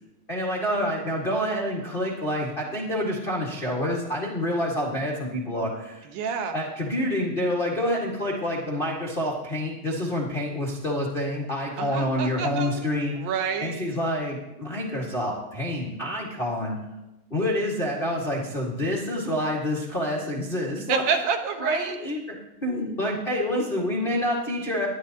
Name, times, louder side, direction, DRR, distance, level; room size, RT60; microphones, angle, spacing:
voice 1, 0.3-6.1 6.5-13.3 13.6-16.8 17.3-21.0 21.6-22.2 22.6-24.9, left 1 dB, 85° left, -4 dB, 0.4 m, -27 dB
voice 2, 6.1-6.6 11.8-12.8 13.1-13.8 20.9-22.0, right 6 dB, 80° right, 5 dB, 2.8 m, -28 dB
19.0 x 11.0 x 2.9 m, 0.98 s
omnidirectional pair, 4.2 m